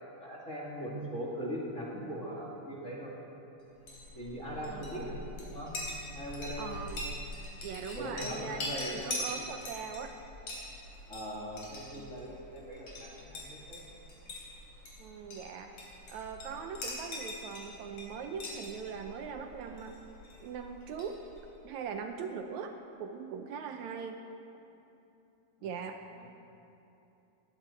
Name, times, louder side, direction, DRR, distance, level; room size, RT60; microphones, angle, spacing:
voice 1, 0.1-3.2 4.2-5.2 5.5-5.7 6.1-6.8 7.9-9.1 11.1-13.8 25.6-25.7 26.2-26.3, equal, 30° left, -4 dB, 2.1 m, -40 dB
Chink clink, 3.7-21.5, left 1 dB, 55° left, 4.5 m, -43 dB
voice 2, 4.5-4.8 6.6-7.0 7.6-8.6 8.8-10.2 15.0-15.7 16.1-20.0 20.4-21.2 21.6-22.7 23.0-24.2 25.6-26.0, right 6 dB, 75° right, 5 dB, 2.0 m, -40 dB
19.5 x 15.0 x 4.3 m, 2.8 s
omnidirectional pair, 3.6 m